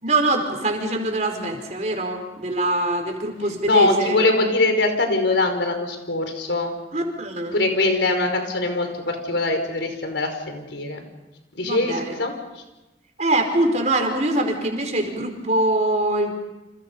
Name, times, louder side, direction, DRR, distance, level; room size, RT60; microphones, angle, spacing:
voice 1, 0.0-4.2 6.9-7.6 11.6-12.2 13.2-16.3, right 1 dB, 40° right, 4 dB, 4.6 m, -23 dB
voice 2, 3.6-6.7 7.5-11.0 11.5-12.6, left 2 dB, 90° left, 5 dB, 5.3 m, -22 dB
30.0 x 27.5 x 5.6 m, 1.0 s
head